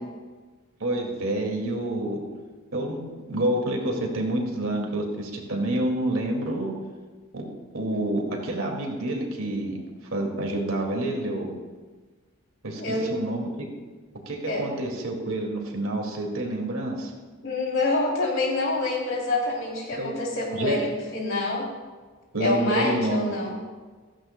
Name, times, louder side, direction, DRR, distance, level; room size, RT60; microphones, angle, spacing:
voice 1, 0.8-2.2 2.7-3.0 3.3-6.7 7.3-7.5 7.7-9.8 10.1-11.5 12.6-13.7 14.3-17.1 20.0-20.1 20.5-20.8 22.3-23.4, right 1 dB, 65° right, 1 dB, 2.2 m, -28 dB
voice 2, 12.8-13.1 14.5-14.7 17.4-21.7 22.4-23.5, left 2 dB, 60° left, -2 dB, 3.0 m, -26 dB
15.5 x 14.5 x 2.2 m, 1.4 s
head